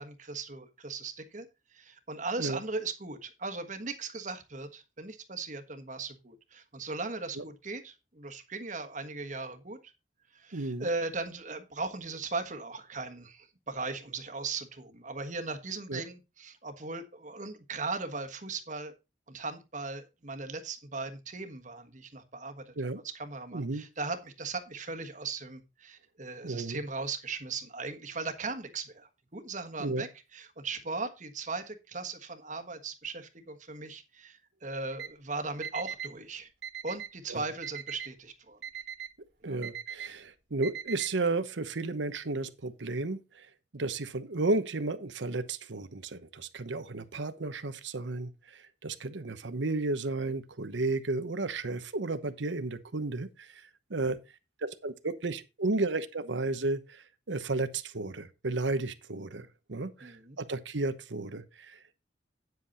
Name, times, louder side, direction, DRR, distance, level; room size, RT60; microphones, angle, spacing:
voice 1, 0.0-1.5 1.7-9.9 10.3-18.9 19.3-22.7 23.0-36.5 36.8-38.6 39.4-39.6 60.0-60.4, right 3 dB, 45° right, 1.3 m, -38 dB
voice 2, 10.5-10.9 15.9-16.0 22.8-23.0 23.5-23.8 26.4-26.8 29.8-30.0 37.3-37.4 39.4-43.5 43.7-54.2 54.6-62.0, right 2 dB, 90° right, 1.0 m, -33 dB
Alarm, 34.9-35.1 35.6-36.1 36.6-37.1 37.6-38.1 38.6-39.1 39.6-40.1 40.6-41.1, right 8 dB, 60° right, 1.4 m, -39 dB
9.4 x 7.8 x 4.1 m
head